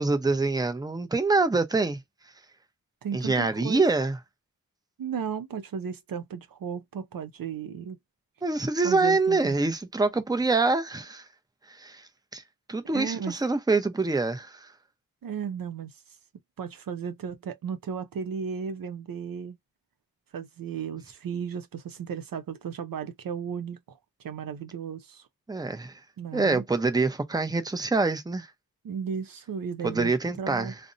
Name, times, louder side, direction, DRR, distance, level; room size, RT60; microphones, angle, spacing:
voice 1, 0.0-2.0 3.1-4.2 8.4-11.3 11.7-12.4 12.7-14.7 25.5-26.0 26.3-28.5 29.8-30.8, right 3 dB, 10° right, 0.6 m, -25 dB
voice 2, 3.0-3.8 5.0-8.0 8.8-9.6 12.9-13.4 15.2-15.9 16.6-19.6 20.3-25.3 26.2-26.6 28.8-30.7, right 7 dB, 65° right, 0.5 m, -35 dB
2.6 x 2.0 x 2.5 m
cardioid pair, 55°, 36 cm